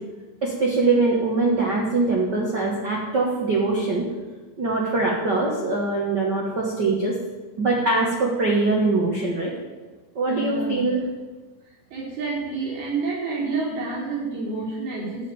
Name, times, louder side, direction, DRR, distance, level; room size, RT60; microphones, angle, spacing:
voice 1, 0.4-4.1 4.6-7.2 7.6-9.5 10.1-11.0, right 3 dB, 55° right, -2 dB, 1.1 m, -22 dB
voice 2, 10.3-10.9 11.9-15.3, right 3 dB, 80° right, -5 dB, 5.6 m, -29 dB
13.5 x 5.0 x 8.9 m, 1.3 s
omnidirectional pair, 4.4 m